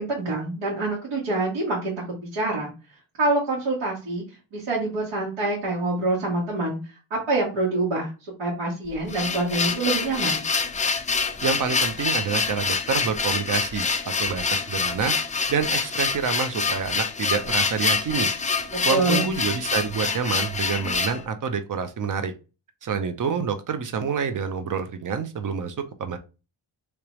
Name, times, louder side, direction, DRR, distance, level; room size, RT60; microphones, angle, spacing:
voice 1, 0.0-2.7 3.2-4.2 4.5-6.8 7.1-8.1 8.4-10.4 18.9-19.3, right 2 dB, 75° right, -6 dB, 1.6 m, -26 dB
sound 1, 8.9-21.2, left 5 dB, 20° left, 0.3 m, -26 dB
voice 2, 11.4-15.1 15.5-18.3 18.8-22.3 22.8-26.2, right 6 dB, 40° right, 9 dB, 0.6 m, -27 dB
3.3 x 3.0 x 3.0 m, 0.31 s
cardioid pair, 110°, 48 cm